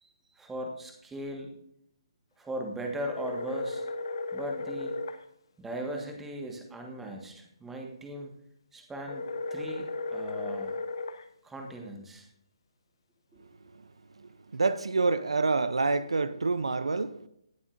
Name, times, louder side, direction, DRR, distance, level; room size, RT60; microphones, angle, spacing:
voice 1, 0.0-1.5 2.4-3.8 4.3-4.9 5.6-8.3 8.7-10.8 11.4-12.3 13.3-13.4, right 1 dB, 5° right, 1.5 m, -38 dB
sound 1, 3.1-5.2 9.1-11.2, left 3 dB, 55° left, 0.9 m, -35 dB
voice 2, 14.5-17.3, right 3 dB, 75° right, 0.6 m, -27 dB
18.0 x 7.1 x 2.6 m
figure-of-eight pair, 145°, 3 cm